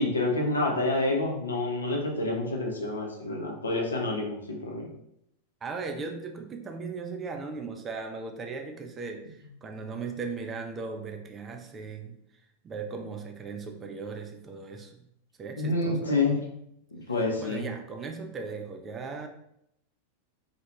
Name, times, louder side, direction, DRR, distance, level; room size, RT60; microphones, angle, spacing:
voice 1, 0.0-4.9 15.6-16.4 16.9-17.7, left 2 dB, 75° left, 1 dB, 0.5 m, -28 dB
voice 2, 5.6-12.2 12.6-15.1 15.4-16.4 17.2-19.3, right 4 dB, 20° right, 4 dB, 0.3 m, -38 dB
2.4 x 2.1 x 2.9 m, 0.78 s
figure-of-eight pair, 90°, 0 cm